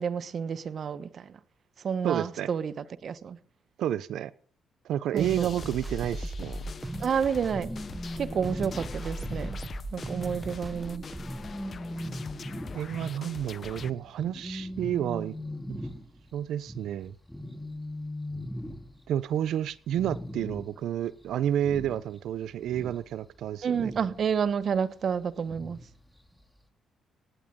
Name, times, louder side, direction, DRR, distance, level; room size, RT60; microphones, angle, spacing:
voice 1, 0.0-1.3 1.8-2.7 3.0-3.4 5.1-5.5 7.0-7.7 8.2-9.6 9.9-11.0 23.6-25.8, right 7 dB, 55° right, 1.2 m, -29 dB
voice 2, 2.0-2.5 3.8-4.3 4.8-6.6 12.7-15.3 15.7-15.8 16.3-17.2 19.1-23.9, right 11 dB, 75° right, 1.0 m, -30 dB
sound 1, 5.2-13.9, left 6 dB, 45° left, 0.9 m, -44 dB
sound 2, 5.2-11.6, right 2 dB, 15° right, 1.1 m, -38 dB
sound 3, 7.5-19.2 19.5-19.6 19.9-20.9 21.2-22.3 22.6-24.2 25.5-25.9 26.3-26.4, left 1 dB, ahead, 2.7 m, -39 dB
18.5 x 17.5 x 3.9 m
cardioid pair, 90°, 0 cm